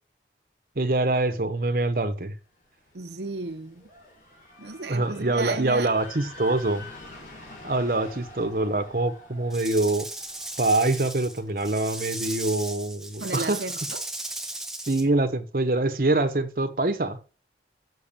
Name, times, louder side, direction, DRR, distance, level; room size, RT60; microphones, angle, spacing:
voice 1, 0.8-2.3 4.9-6.9 7.6-10.1 10.6-13.6 14.9-17.2, right 2 dB, 55° right, 1.0 m, -25 dB
sound 1, 2.6-12.4, left 2 dB, 50° left, 3.3 m, -47 dB
voice 2, 2.9-3.9 4.6-5.9 13.2-14.0, right 3 dB, 80° right, 0.9 m, -34 dB
Rattle / Rattle (instrument), 9.5-15.0, right 2 dB, 5° right, 0.9 m, -36 dB
6.8 x 6.4 x 7.2 m
head